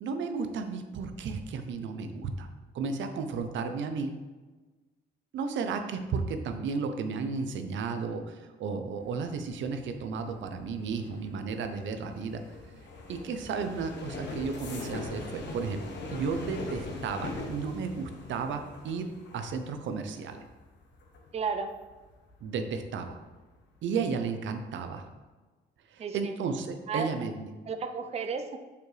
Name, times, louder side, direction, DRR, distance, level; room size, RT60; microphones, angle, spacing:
voice 1, 0.0-2.5 2.7-4.2 5.3-12.5 13.1-15.8 16.1-20.4 22.4-23.2 23.8-25.1 25.9-27.5, right 5 dB, 70° right, 7 dB, 0.6 m, -33 dB
sound 1, 9.0-23.6 24.0-24.4 24.7-25.1, left 2 dB, 65° left, 1.2 m, -42 dB
voice 2, 21.3-21.7 26.0-26.3 26.9-27.1 27.7-28.6, right 5 dB, 30° right, 7 dB, 0.5 m, -33 dB
7.0 x 4.7 x 3.2 m, 1.3 s
cardioid pair, 90°, 20 cm